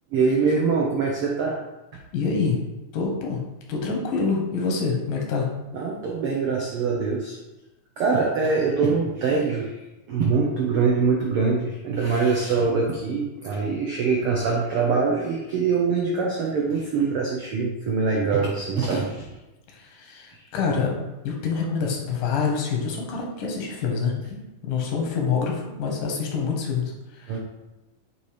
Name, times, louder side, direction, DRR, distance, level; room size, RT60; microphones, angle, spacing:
voice 1, 0.1-1.6 5.7-7.4 8.0-9.7 10.1-19.2 20.3-20.4 27.3-27.4, right 4 dB, 85° right, -2 dB, 1.2 m, -23 dB
voice 2, 2.1-2.6 2.9-3.4 3.7-5.5 19.7-21.0 21.2-27.4, left 5 dB, 85° left, 0 dB, 2.8 m, -26 dB
8.0 x 3.0 x 4.9 m, 1.0 s
omnidirectional pair, 3.7 m